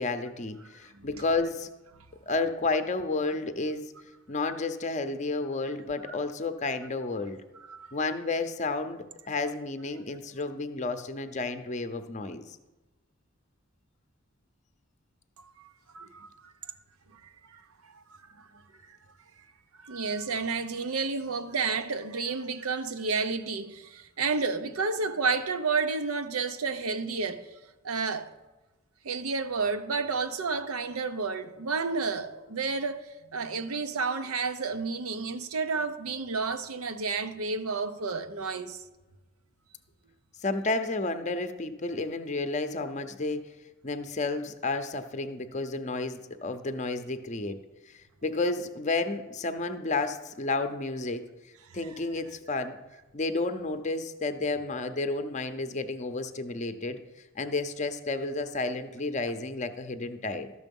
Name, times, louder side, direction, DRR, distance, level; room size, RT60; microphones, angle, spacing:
voice 1, 0.0-1.7 2.3-3.9 4.3-7.4 7.9-12.6 40.4-43.4 43.8-47.6 47.9-51.2 51.7-52.8 53.1-57.0 57.3-60.5, left 3 dB, 35° left, 0.6 m, -31 dB
voice 2, 15.9-16.7 17.5-18.0 18.4-18.5 18.9-19.0 19.8-27.5 27.8-28.3 29.0-38.8, right 4 dB, 85° right, 0.7 m, -31 dB
13.5 x 6.4 x 5.3 m
head